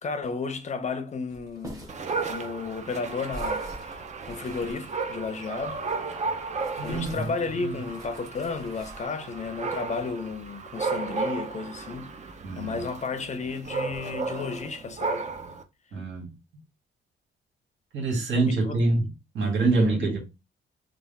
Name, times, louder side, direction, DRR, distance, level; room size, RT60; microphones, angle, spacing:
voice 1, 0.0-1.9 2.3-4.0 4.3-5.8 6.8-15.3 18.5-18.8 19.7-20.1, left 4 dB, 35° left, 0.6 m, -33 dB
sound 1, 1.3-6.0 6.5-9.0, right 1 dB, 15° right, 1.5 m, -45 dB
Dog, 1.9-15.6, right 4 dB, 35° right, 0.6 m, -34 dB
voice 2, 6.8-7.3 7.6-7.7 12.4-12.8 15.9-16.3 17.9-19.0 19.3-20.2, right 3 dB, 70° right, 1.7 m, -25 dB
3.5 x 2.4 x 3.4 m
cardioid pair, 90°, 20 cm